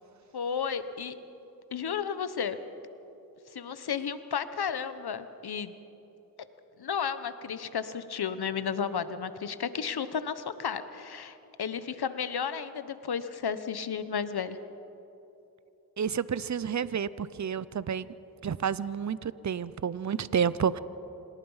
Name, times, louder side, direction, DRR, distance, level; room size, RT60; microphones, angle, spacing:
voice 1, 0.3-1.1 1.7-2.6 3.5-5.7 6.8-14.6, left 7 dB, 85° left, 12 dB, 1.1 m, -33 dB
voice 2, 16.0-18.1 18.4-20.8, right 7 dB, 50° right, 17 dB, 0.7 m, -30 dB
26.5 x 19.0 x 5.7 m, 2.9 s
cardioid pair, 40°, 37 cm